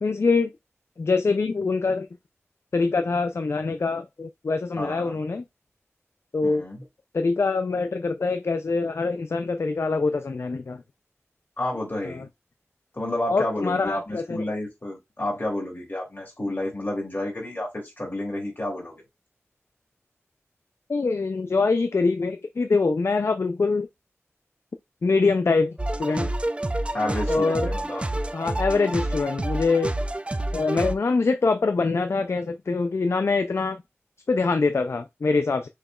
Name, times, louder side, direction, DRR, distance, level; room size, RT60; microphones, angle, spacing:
voice 1, 0.0-0.5 1.0-2.1 2.7-5.4 6.3-6.6 7.1-10.8 12.1-12.2 13.3-14.4 20.9-23.9 25.0-26.3 27.3-27.7 28.3-29.9 30.5-33.8 34.3-35.7, left 4 dB, 60° left, 0.4 m, -24 dB
voice 2, 4.8-5.2 6.4-6.8 11.6-12.3 12.9-19.0 26.9-28.1, left 1 dB, 40° left, 2.7 m, -30 dB
sound 1, 25.8-30.9, right 1 dB, 20° right, 0.4 m, -28 dB
6.4 x 3.0 x 2.3 m
cardioid pair, 40°, 5 cm